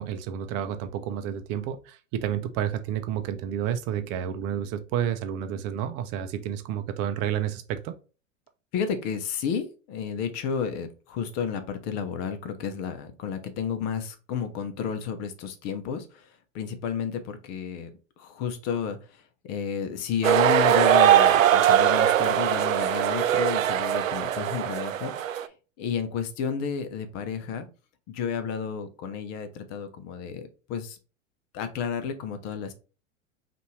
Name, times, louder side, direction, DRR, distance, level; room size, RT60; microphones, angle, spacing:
voice 1, 0.0-7.9, right 9 dB, 40° right, 0.6 m, -30 dB
voice 2, 8.7-17.9 18.2-27.7 28.1-31.0 31.5-32.7, left 7 dB, 40° left, 0.9 m, -32 dB
sound 1, 20.2-25.5, right 10 dB, 85° right, 0.5 m, -21 dB
5.3 x 2.7 x 3.1 m
hypercardioid pair, 100°, 38 cm